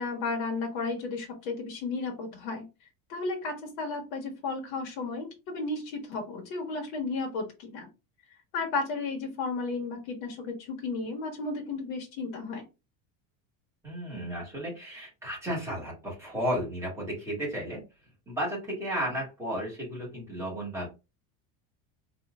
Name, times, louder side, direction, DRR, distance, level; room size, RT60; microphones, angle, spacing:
voice 1, 0.0-2.6 3.1-7.9 8.5-12.6, left 3 dB, 65° left, 1 dB, 1.2 m, -33 dB
voice 2, 13.8-17.8 18.3-20.9, equal, 5° right, -5 dB, 1.5 m, -33 dB
4.2 x 2.5 x 2.3 m, 0.27 s
cardioid pair, 180°, 38 cm